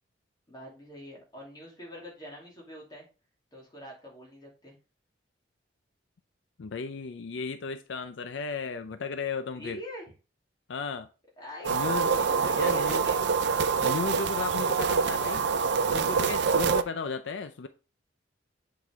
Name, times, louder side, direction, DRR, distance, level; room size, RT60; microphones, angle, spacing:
voice 1, 0.5-3.1 3.5-4.8 9.5-10.0 11.4-11.7 12.1-13.2, equal, 20° left, 2.7 m, -44 dB
voice 2, 6.6-9.8 10.7-11.1 11.7-12.2 12.6-13.0 13.8-15.5 15.9-17.7, left 5 dB, 70° left, 0.5 m, -35 dB
sound 1, 11.6-16.8, right 5 dB, 60° right, 0.5 m, -26 dB
8.1 x 4.7 x 3.5 m
head